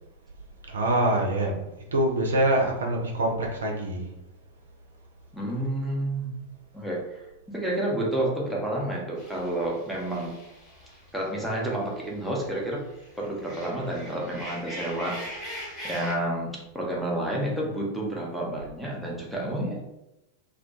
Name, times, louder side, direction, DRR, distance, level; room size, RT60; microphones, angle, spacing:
voice 1, 0.7-1.6 1.9-4.1, right 1 dB, 70° right, 0 dB, 0.4 m, -24 dB
voice 2, 5.3-6.3 6.7-7.2 7.5-10.4 11.1-12.9 13.2-15.5 15.8-19.8, right 1 dB, ahead, -4 dB, 0.6 m, -30 dB
sound 1, 9.2-12.1 12.4-16.1, equal, 25° left, 0.9 m, -41 dB
2.2 x 2.1 x 2.7 m, 0.93 s
figure-of-eight pair, 90°, 0 cm